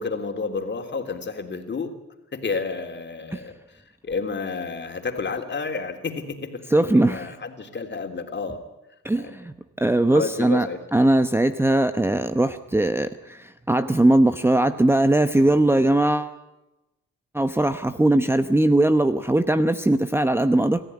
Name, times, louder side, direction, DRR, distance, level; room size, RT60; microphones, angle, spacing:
voice 1, 0.0-2.0 2.3-8.6 9.2-9.3 10.1-10.8, left 4 dB, 35° left, 4 dB, 3.4 m, -31 dB
voice 2, 6.7-7.3 9.0-16.3 17.3-20.8, right 1 dB, 10° right, 9 dB, 0.9 m, -20 dB
27.0 x 14.5 x 9.8 m, 0.98 s
cardioid pair, 90°, 30 cm